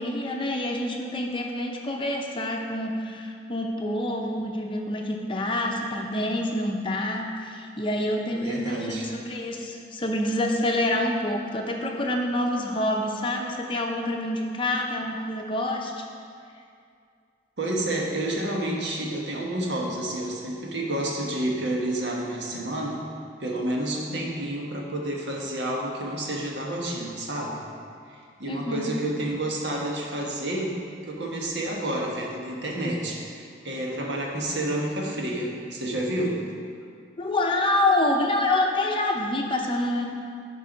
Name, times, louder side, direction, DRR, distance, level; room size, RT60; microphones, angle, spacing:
voice 1, 0.0-16.0 28.5-28.9 37.2-40.1, left 1 dB, 25° left, 1 dB, 0.7 m, -27 dB
voice 2, 8.3-9.1 17.6-23.0 23.4-27.6 28.1-30.8 31.1-36.4, right 1 dB, 75° right, -1 dB, 1.3 m, -29 dB
10.5 x 4.6 x 5.1 m, 2.3 s
head